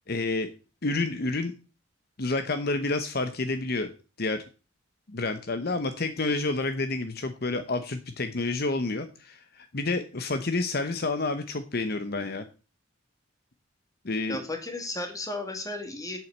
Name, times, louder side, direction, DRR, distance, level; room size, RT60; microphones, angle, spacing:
voice 1, 0.1-0.5 0.8-1.5 2.2-3.9 4.2-4.4 5.1-12.5 14.0-14.4, left 3 dB, 50° left, 9 dB, 0.9 m, -29 dB
voice 2, 14.3-16.2, left 2 dB, 20° left, 4 dB, 2.3 m, -34 dB
8.3 x 7.6 x 7.2 m, 0.34 s
head